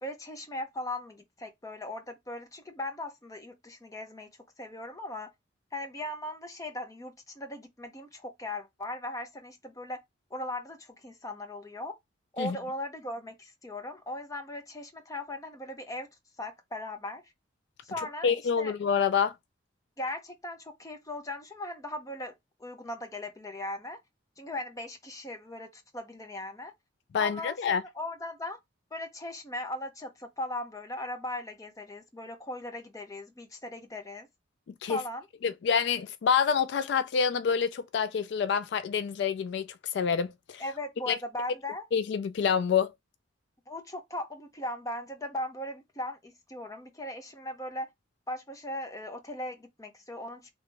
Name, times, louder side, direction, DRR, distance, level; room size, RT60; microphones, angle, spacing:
voice 1, 0.0-4.3 4.6-5.3 5.7-10.0 10.3-11.9 12.3-16.1 16.4-17.2 17.8-18.7 20.0-22.3 22.6-24.0 24.4-26.7 27.2-28.6 28.9-34.3 34.9-35.2 40.6-41.8 43.7-47.9 48.3-50.5, left 1 dB, 20° left, 0.7 m, -38 dB
voice 2, 18.0-19.3 27.1-27.8 34.8-35.0 35.4-40.6 41.1-41.2 41.9-42.9, left 6 dB, 60° left, 0.3 m, -27 dB
3.2 x 2.9 x 3.3 m
head